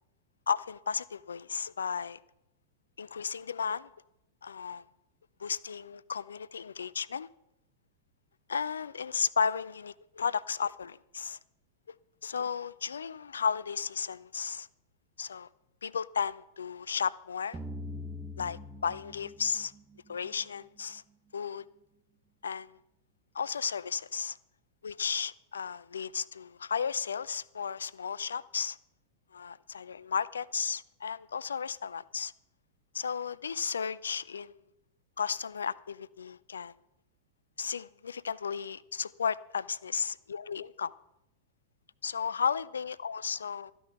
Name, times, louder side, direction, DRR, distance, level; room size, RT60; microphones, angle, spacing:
voice 1, 0.5-2.2 3.0-3.9 4.4-4.8 5.4-7.3 8.5-11.4 11.9-12.0 12.2-14.7 15.2-15.5 15.8-17.6 18.4-19.7 20.1-21.0 21.3-21.6 22.4-22.8 23.3-24.4 24.8-28.8 29.3-32.3 32.9-34.6 35.2-36.7 37.6-40.9 42.0-43.7, left 6 dB, 75° left, 0.4 m, -34 dB
sound 1, 17.5-20.5, left 1 dB, 15° right, 1.0 m, -42 dB
14.0 x 10.0 x 5.9 m
figure-of-eight pair, 95°, 0 cm